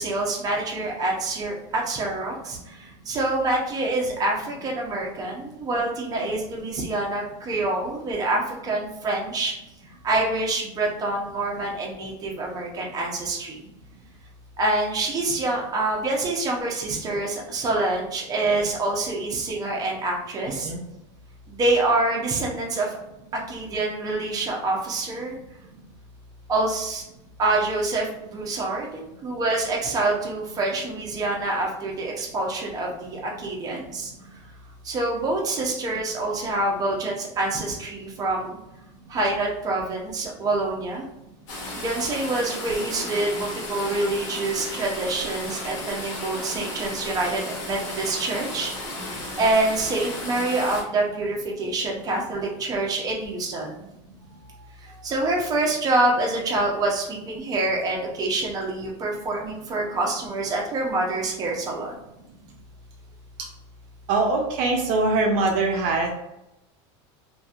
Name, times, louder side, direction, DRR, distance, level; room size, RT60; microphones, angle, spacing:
voice 1, 0.0-9.5 10.0-13.6 14.6-20.7 21.5-23.0 23.3-25.4 26.5-27.0 27.4-34.1 34.8-38.6 39.1-41.0 41.8-48.7 49.1-53.9 55.0-61.9, right 2 dB, 25° right, -2 dB, 0.7 m, -26 dB
voice 2, 20.5-20.8 55.0-55.1 63.4-63.5 64.1-66.1, right 3 dB, 60° right, 1 dB, 0.5 m, -23 dB
sound 1, 41.5-50.8, left 1 dB, 85° left, 1.2 m, -34 dB
2.9 x 2.6 x 2.4 m, 0.89 s
supercardioid pair, 140°, 15 cm